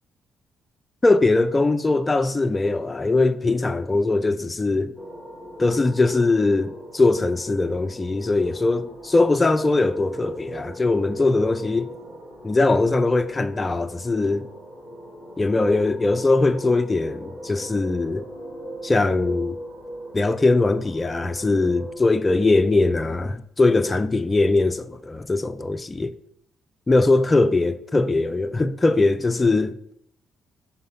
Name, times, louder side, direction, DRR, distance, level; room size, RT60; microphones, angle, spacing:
voice 1, 1.0-4.9 5.6-11.9 12.4-14.4 15.4-18.2 18.8-19.6 20.1-26.1 26.9-29.9, left 3 dB, 20° left, 0.4 m, -21 dB
sound 1, 5.0-22.0, right 1 dB, 10° right, 1.9 m, -40 dB
5.6 x 4.0 x 5.4 m
cardioid pair, 90°, 0 cm